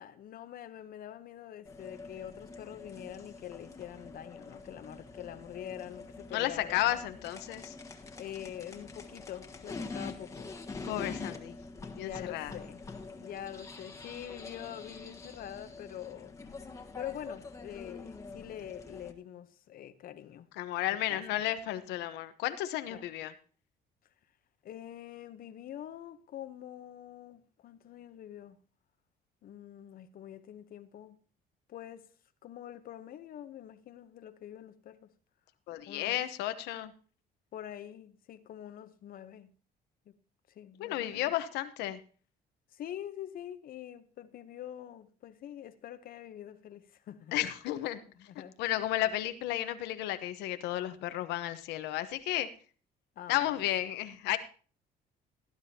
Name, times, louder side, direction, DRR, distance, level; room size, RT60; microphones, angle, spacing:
voice 1, 0.0-6.9 8.2-10.5 11.0-11.1 12.0-12.8 13.2-16.3 17.0-20.5 20.8-21.2 22.9-23.0 24.6-28.6 29.4-31.2 31.7-32.1 32.4-35.1 35.8-36.2 37.5-39.5 40.1-40.2 40.5-41.3 42.7-47.3 48.3-48.6 53.2-53.7, left 11 dB, 60° left, 0.9 m, -45 dB
sound 1, 1.6-19.1, left 3 dB, 20° left, 1.4 m, -45 dB
voice 2, 6.3-7.7 10.8-11.5 12.0-12.5 20.6-23.3 35.7-36.9 40.8-42.0 47.3-48.0 48.6-52.5 53.3-54.4, left 13 dB, 90° left, 1.0 m, -33 dB
18.0 x 10.5 x 2.8 m
cardioid pair, 110°, 17 cm